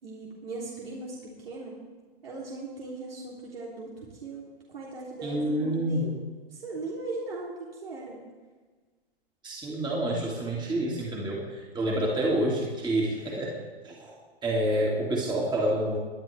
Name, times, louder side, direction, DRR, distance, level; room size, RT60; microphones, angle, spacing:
voice 1, 0.0-1.8 2.2-6.2 6.5-8.2, right 2 dB, 70° right, -5 dB, 3.2 m, -38 dB
voice 2, 5.2-6.1 9.4-13.6 13.8-16.0, right 1 dB, 15° right, -3 dB, 2.5 m, -28 dB
23.0 x 10.5 x 3.5 m, 1.4 s
figure-of-eight pair, 105°, 30 cm